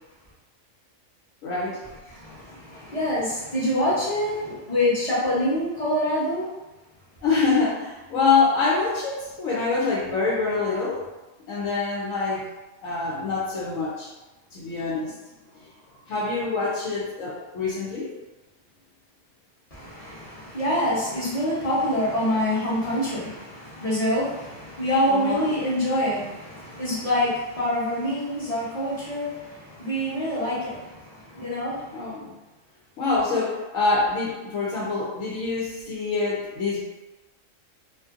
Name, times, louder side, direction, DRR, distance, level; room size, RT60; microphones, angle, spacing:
voice 1, 1.4-1.8 7.2-11.0 11.5-12.4 12.8-14.1 14.5-15.2 16.1-18.1 25.1-25.5 31.9-32.3 33.0-36.8, left 4 dB, 75° left, -6 dB, 0.9 m, -25 dB
voice 2, 2.1-6.5 19.7-32.0, left 1 dB, 35° left, -8 dB, 0.8 m, -26 dB
2.6 x 2.5 x 2.4 m, 1.0 s
omnidirectional pair, 1.4 m